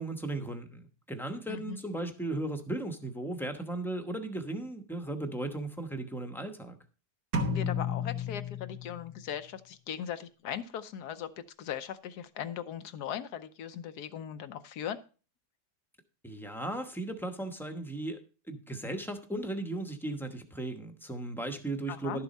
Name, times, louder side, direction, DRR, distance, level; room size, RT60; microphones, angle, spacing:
voice 1, 0.0-6.8 16.2-22.2, right 2 dB, ahead, 6 dB, 0.7 m, -36 dB
voice 2, 1.5-1.8 7.4-15.0 21.9-22.2, left 9 dB, 80° left, 11 dB, 1.3 m, -39 dB
sound 1, 7.3-9.2, left 4 dB, 75° right, 1.8 m, -32 dB
12.0 x 7.0 x 4.1 m, 0.35 s
omnidirectional pair, 1.7 m